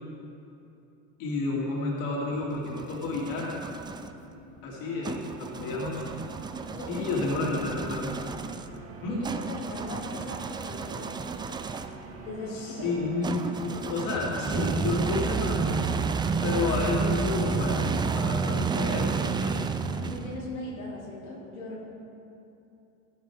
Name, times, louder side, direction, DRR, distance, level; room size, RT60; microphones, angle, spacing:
voice 1, 1.2-3.6 4.6-6.0 6.9-8.2 9.0-9.2 12.5-15.8 16.4-19.6, left 3 dB, 55° left, -4 dB, 3.0 m, -31 dB
sound 1, 2.3-4.1 5.0-12.0 13.2-20.5, right 5 dB, 10° right, 0.3 m, -31 dB
sound 2, 3.3-16.1, right 3 dB, 35° right, 1.6 m, -46 dB
voice 2, 6.7-7.3 9.1-11.3 12.2-13.0 16.4-16.6 20.0-21.9, left 2 dB, 85° left, -6 dB, 2.9 m, -39 dB
15.5 x 9.5 x 3.6 m, 2.8 s
supercardioid pair, 100°, 40 cm